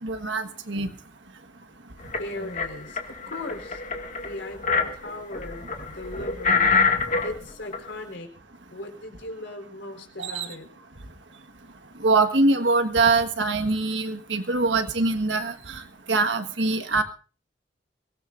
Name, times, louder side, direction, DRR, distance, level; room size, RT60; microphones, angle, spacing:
voice 1, 0.0-0.9 10.2-10.5 12.0-15.8 16.1-17.0, right 3 dB, 75° right, 8 dB, 1.5 m, -23 dB
sound 1, 2.0-2.7 3.0-7.4 7.7-7.9, left 4 dB, 45° left, 2.0 m, -25 dB
voice 2, 2.2-3.8 4.2-6.7 7.2-8.3 8.7-10.7, left 2 dB, 75° left, 4 dB, 4.1 m, -38 dB
23.0 x 18.0 x 2.6 m, 0.37 s
head